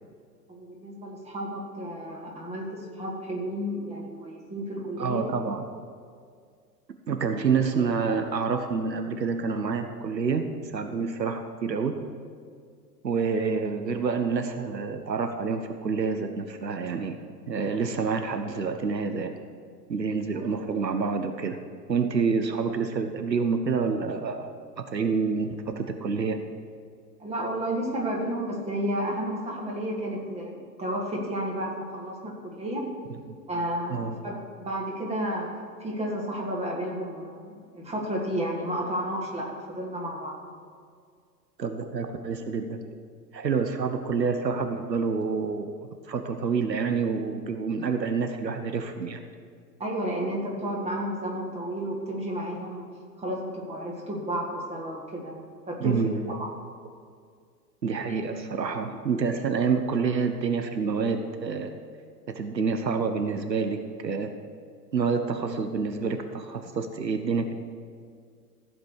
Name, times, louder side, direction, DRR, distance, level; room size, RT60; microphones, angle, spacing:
voice 1, 0.5-5.3 27.2-32.9 33.5-35.5 35.8-40.4 49.8-52.9 53.2-55.3 55.7-56.0 56.4-56.5, right 1 dB, 10° right, -1 dB, 1.8 m, -32 dB
voice 2, 5.0-5.6 7.1-11.9 13.0-17.2 17.5-19.3 19.9-21.6 21.9-24.5 24.9-26.4 33.9-34.1 41.6-42.8 43.3-45.7 46.1-49.2 55.8-56.2 57.8-61.7 62.3-64.3 64.9-67.5, right 5 dB, 80° right, 7 dB, 0.9 m, -28 dB
15.0 x 5.1 x 6.4 m, 2.1 s
figure-of-eight pair, 100°, 50 cm